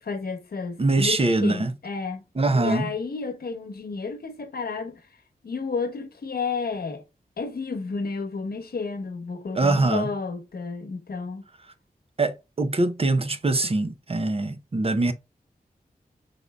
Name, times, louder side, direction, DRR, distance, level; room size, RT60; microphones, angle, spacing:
voice 1, 0.0-2.2 2.5-5.0 5.4-7.0 7.4-11.4, left 4 dB, 85° left, 1.0 m, -31 dB
voice 2, 0.8-1.7 2.4-2.9 9.5-10.1 12.2-15.1, right 2 dB, 40° right, 0.7 m, -23 dB
5.2 x 3.8 x 2.3 m
wide cardioid pair, 70°, 15 cm